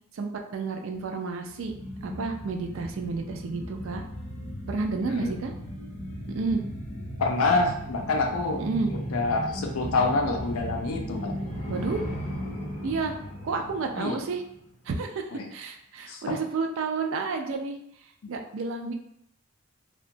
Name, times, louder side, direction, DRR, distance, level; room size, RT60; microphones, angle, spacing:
voice 1, 0.1-1.7 2.0-4.0 4.7-5.5 6.4-6.6 8.6-8.9 11.7-12.0 12.8-13.1 13.4-14.4 14.9-15.2 15.5-17.8 18.3-18.9, right 4 dB, 60° right, 4 dB, 0.3 m, -30 dB
sound 1, 1.5-14.7 15.1-15.2, equal, 30° left, 0.6 m, -36 dB
voice 2, 7.2-8.6 8.9-11.3 13.9-14.2 15.3-15.4 16.1-16.4 18.2-18.3, left 3 dB, 75° left, 3 dB, 0.4 m, -27 dB
2.8 x 2.2 x 2.6 m, 0.75 s
head